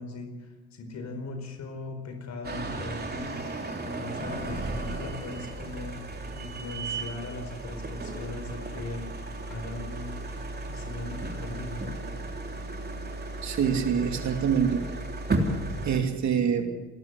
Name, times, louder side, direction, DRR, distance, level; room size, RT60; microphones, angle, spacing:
voice 1, 0.0-3.4 3.8-6.0 6.3-9.1 9.5-10.2 10.7-12.0, left 2 dB, 65° left, 5 dB, 4.8 m, -39 dB
sound 1, 2.4-16.0, right 2 dB, 30° right, 3.4 m, -34 dB
voice 2, 13.4-14.9 15.8-16.7, right 7 dB, 65° right, 5 dB, 2.9 m, -25 dB
29.0 x 12.0 x 8.1 m, 1.3 s
cardioid pair, 90°, 30 cm